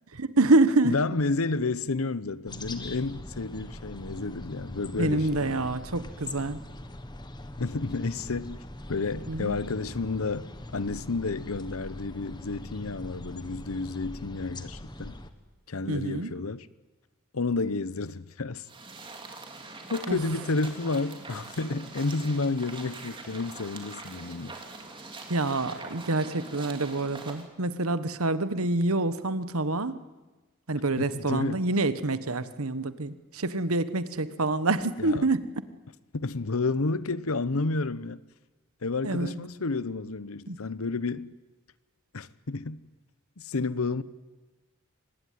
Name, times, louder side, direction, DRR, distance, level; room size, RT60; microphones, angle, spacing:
voice 1, 0.2-1.0 5.0-6.6 9.3-9.5 15.9-16.3 20.1-20.2 25.3-30.0 30.7-35.4 39.0-39.4 40.5-40.6, right 2 dB, 85° right, 1.3 m, -26 dB
voice 2, 0.8-5.7 7.6-8.6 8.9-15.1 15.7-16.7 17.3-18.7 19.9-24.5 31.0-31.6 35.0-35.3 36.1-38.2 38.8-41.3 42.1-42.8 43.4-44.0, left 3 dB, 80° left, 0.9 m, -31 dB
sound 1, 2.5-15.3, left 1 dB, 20° left, 1.4 m, -42 dB
sound 2, 18.7-27.5, right 3 dB, 25° right, 2.9 m, -43 dB
25.0 x 20.0 x 9.4 m
head